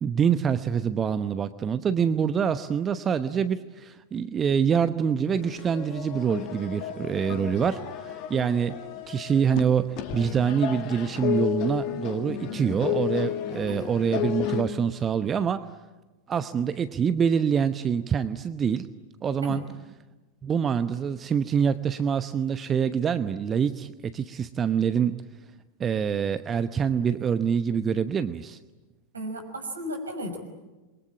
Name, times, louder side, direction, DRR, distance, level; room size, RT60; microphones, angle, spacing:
voice 1, 0.0-8.8 9.1-15.7 16.3-18.9 19.2-19.6 20.4-25.2 25.8-28.6, right 7 dB, 25° right, 12 dB, 0.9 m, -25 dB
sound 1, 5.3-9.6 10.0-14.6, left 11 dB, 40° left, 2.4 m, -32 dB
voice 2, 29.1-30.4, equal, 75° right, 6 dB, 5.8 m, -34 dB
28.5 x 23.0 x 8.9 m, 1.1 s
figure-of-eight pair, 90°, 0 cm